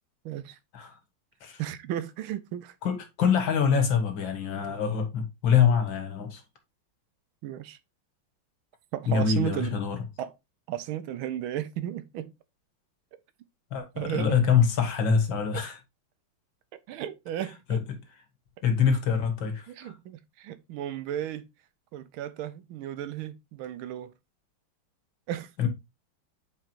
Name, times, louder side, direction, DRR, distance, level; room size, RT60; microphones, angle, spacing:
voice 1, 0.2-0.6 1.6-2.7 7.4-7.8 8.9-9.7 10.2-10.3 10.7-12.3 14.0-14.4 15.5-15.6 16.9-17.8 19.7-21.4 21.9-24.1 25.3-25.5, right 11 dB, 80° right, 1.4 m, -34 dB
voice 2, 2.8-6.4 9.1-10.0 13.7-15.8 17.7-17.8 18.6-19.9 25.6-25.7, left 7 dB, 65° left, 2.1 m, -25 dB
7.8 x 4.7 x 2.9 m
omnidirectional pair, 2.3 m